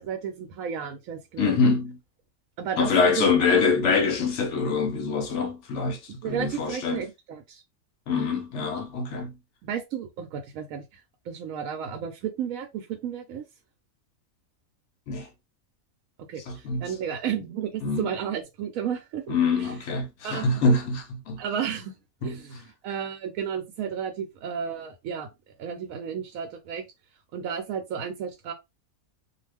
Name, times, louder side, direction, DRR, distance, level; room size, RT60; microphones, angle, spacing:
voice 1, 0.0-1.8 2.6-3.6 6.2-7.6 9.6-11.0 11.3-13.4 16.3-19.3 19.6-19.7 20.2-20.5 21.4-21.9 22.2-25.3 25.6-26.8 27.3-28.5, right 8 dB, 80° right, 1.0 m, -33 dB
voice 2, 1.4-2.0 2.8-7.0 8.1-9.3 15.1-15.3 16.5-16.9 17.8-18.1 19.3-21.4 22.2-22.4, left 4 dB, 65° left, 0.8 m, -25 dB
2.4 x 2.3 x 3.3 m
omnidirectional pair, 1.4 m